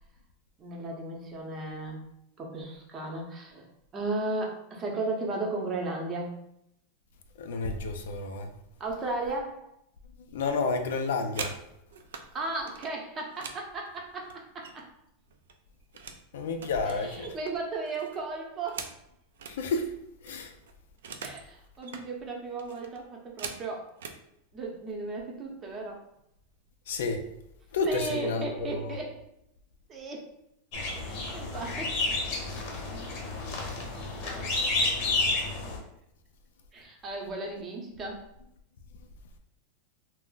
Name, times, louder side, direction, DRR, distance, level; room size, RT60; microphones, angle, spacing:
voice 1, 0.6-2.0 2.4-3.7 3.9-6.3 8.8-9.7 12.3-14.9 16.8-18.9 21.2-23.9 24.5-26.0 27.9-29.2 29.9-30.3 31.0-32.0 33.6-34.7 35.0-35.3 36.7-38.3, right 2 dB, 25° right, 0.7 m, -35 dB
voice 2, 7.4-8.5 10.3-11.6 16.3-17.3 19.5-20.0 20.2-20.5 26.9-27.3 27.7-28.8, left 3 dB, 85° left, 0.4 m, -30 dB
sound 1, 11.2-12.3 12.7-15.0 15.3-16.2 16.6-19.6 20.0-20.1 20.3-21.5 21.7-22.1 22.6-24.2 25.0-25.2 25.6-25.9 26.2-26.7, right 6 dB, 90° right, 0.3 m, -43 dB
sound 2, 30.7-35.8, left 3 dB, 55° left, 0.8 m, -30 dB
2.4 x 2.0 x 3.8 m
supercardioid pair, 135°, 0 cm